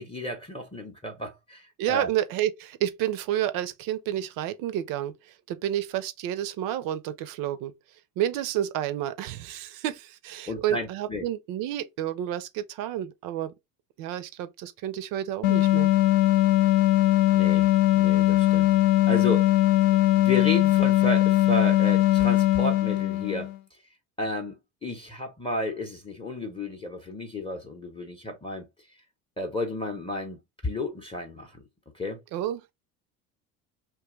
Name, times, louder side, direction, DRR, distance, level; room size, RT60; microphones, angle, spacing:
voice 1, 0.0-2.1 10.5-11.3 17.3-18.8 19.1-19.6 20.1-23.5 24.2-28.7 29.4-31.6 31.9-32.2, left 1 dB, 10° left, 0.8 m, -32 dB
voice 2, 1.8-7.7 8.2-13.5 14.0-15.9 32.3-32.7, right 12 dB, 50° right, 0.6 m, -30 dB
sound 1, 15.4-23.6, left 15 dB, 70° left, 0.5 m, -20 dB
2.7 x 2.3 x 3.7 m
hypercardioid pair, 75°, 43 cm